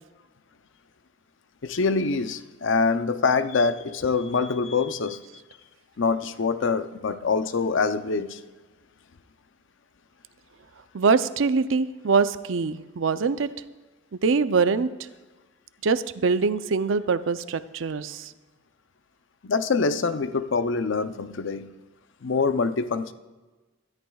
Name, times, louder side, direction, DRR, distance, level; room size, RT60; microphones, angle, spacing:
voice 1, 1.6-5.2 6.0-8.4 19.4-21.7 22.2-23.1, left 4 dB, 65° left, 11 dB, 0.6 m, -25 dB
voice 2, 10.9-13.5 14.1-14.9 15.8-18.3, right 4 dB, 70° right, 13 dB, 0.5 m, -23 dB
22.0 x 13.0 x 2.3 m, 1.2 s
head